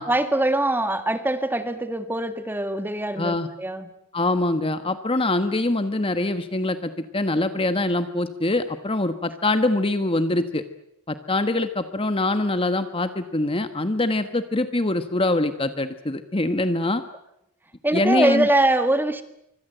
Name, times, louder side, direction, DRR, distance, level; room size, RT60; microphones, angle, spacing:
voice 1, 0.0-3.9 17.8-19.2, right 1 dB, 10° right, 9 dB, 1.8 m, -23 dB
voice 2, 3.2-3.5 4.1-10.6 11.1-17.0 17.9-18.5, left 2 dB, 25° left, 9 dB, 1.3 m, -24 dB
25.5 x 24.5 x 7.9 m, 0.79 s
head